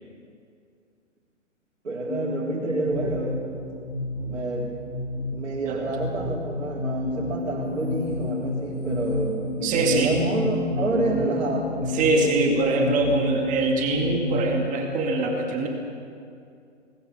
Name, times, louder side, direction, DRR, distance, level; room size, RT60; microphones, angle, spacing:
voice 1, 1.8-3.4 4.3-4.7 5.3-11.7, right 3 dB, 70° right, -4 dB, 3.9 m, -28 dB
sound 1, 2.1-14.6, left 2 dB, 80° left, 3.0 m, -30 dB
voice 2, 9.6-10.2 11.8-15.7, right 2 dB, 20° right, 1 dB, 2.2 m, -23 dB
20.0 x 19.5 x 6.8 m, 2.4 s
figure-of-eight pair, 130°, 38 cm